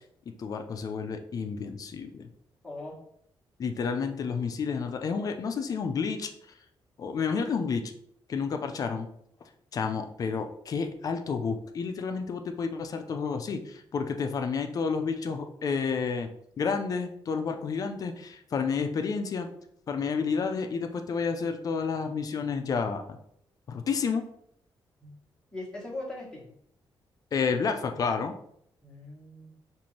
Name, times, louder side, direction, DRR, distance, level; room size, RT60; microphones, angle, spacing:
voice 1, 0.4-2.3 3.6-6.3 7.0-7.9 8.3-9.1 9.7-16.3 16.6-19.5 19.9-23.2 23.7-24.2 27.3-28.3, left 5 dB, 45° left, 6 dB, 0.4 m, -30 dB
voice 2, 2.6-3.0 25.0-25.1 25.5-26.5 28.8-29.5, left 2 dB, 10° left, -5 dB, 1.2 m, -40 dB
5.4 x 2.5 x 3.1 m, 0.70 s
cardioid pair, 140°, 9 cm